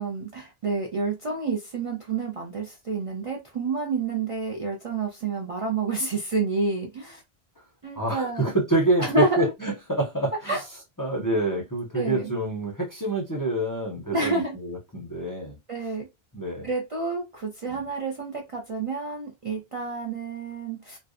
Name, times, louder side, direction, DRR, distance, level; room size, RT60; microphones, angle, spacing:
voice 1, 0.0-7.2 7.8-8.5 9.0-9.4 10.5-10.6 11.9-12.4 14.1-14.5 15.7-16.1 16.6-21.0, right 3 dB, 45° right, 0.4 m, -29 dB
voice 2, 7.9-10.6 11.0-15.6 16.3-16.7 17.7-17.8, right 1 dB, 25° left, 0.5 m, -27 dB
2.5 x 2.1 x 2.3 m
omnidirectional pair, 1.0 m